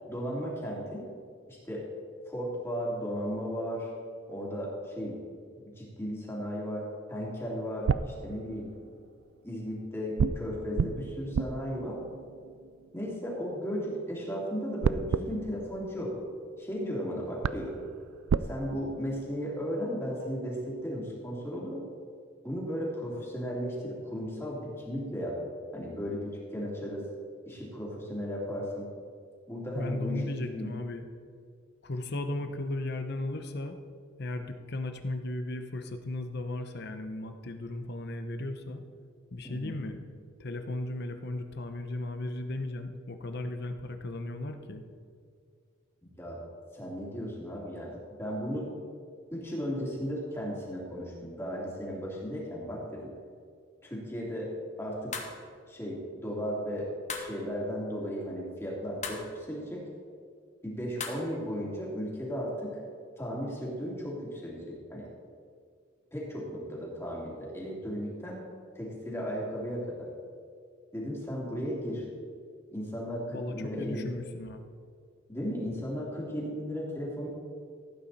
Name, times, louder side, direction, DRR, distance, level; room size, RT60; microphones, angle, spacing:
voice 1, 0.1-1.0 1.5-1.8 2.3-3.9 4.3-5.1 5.5-8.7 9.4-12.0 12.9-16.1 16.6-17.8 18.4-21.8 22.4-25.4 25.7-27.0 27.5-28.9 29.5-30.7 39.4-39.8 46.0-46.4 46.7-47.9 48.2-48.7 49.3-53.1 53.8-54.5 54.8-55.2 55.7-59.8 60.6-62.7 63.2-65.1 66.1-68.4 68.7-70.1 70.9-72.1 72.7-74.0 75.3-77.3, equal, 15° left, -4 dB, 2.8 m, -35 dB
sound 1, 7.4-9.0 10.2-13.5 14.8-16.7 17.1-17.2 17.4-18.5, right 6 dB, 85° right, 0.4 m, -33 dB
voice 2, 29.7-31.1 31.8-33.7 34.2-38.8 39.3-40.0 40.4-44.8 73.3-74.6, left 2 dB, 55° left, 7 dB, 1.0 m, -36 dB
sound 2, 55.1-55.4 57.1-57.4 59.0-59.3 61.0-61.3, left 5 dB, 35° left, 1.2 m, -37 dB
16.0 x 9.0 x 4.2 m, 2.2 s
head